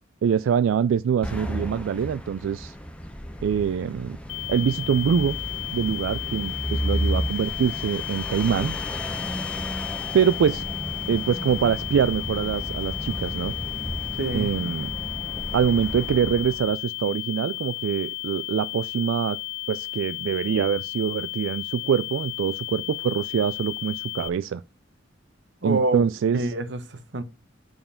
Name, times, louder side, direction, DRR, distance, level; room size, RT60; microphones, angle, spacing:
voice 1, 0.2-2.8 3.4-4.2 4.5-5.4 5.7-8.8 10.1-10.6 11.1-13.5 14.3-14.9 15.5-19.4 19.7-24.6 25.6-26.4, right 7 dB, 90° right, 0.3 m, -24 dB
sound 1, 1.2-16.7, equal, 5° left, 0.9 m, -33 dB
sound 2, 4.3-24.3, left 26 dB, 65° left, 0.4 m, -34 dB
voice 2, 14.2-14.5 25.6-26.0 26.3-27.2, right 2 dB, 65° right, 1.0 m, -27 dB
5.5 x 4.7 x 6.3 m
head